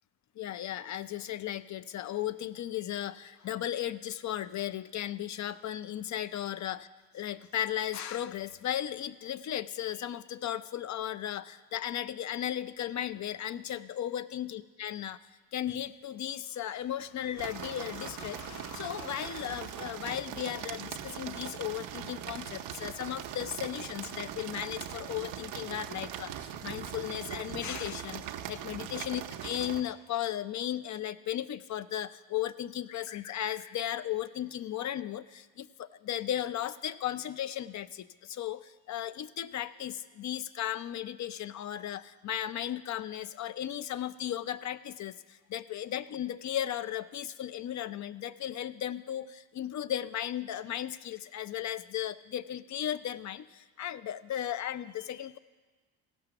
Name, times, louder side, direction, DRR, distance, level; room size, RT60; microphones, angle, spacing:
voice 1, 0.4-6.9 7.1-15.2 15.5-55.4, left 11 dB, 40° left, 15 dB, 0.5 m, -36 dB
sound 1, 17.4-29.8, right 10 dB, 85° right, 0.8 m, -41 dB
15.5 x 5.8 x 6.9 m, 1.3 s
supercardioid pair, 85°, 45 cm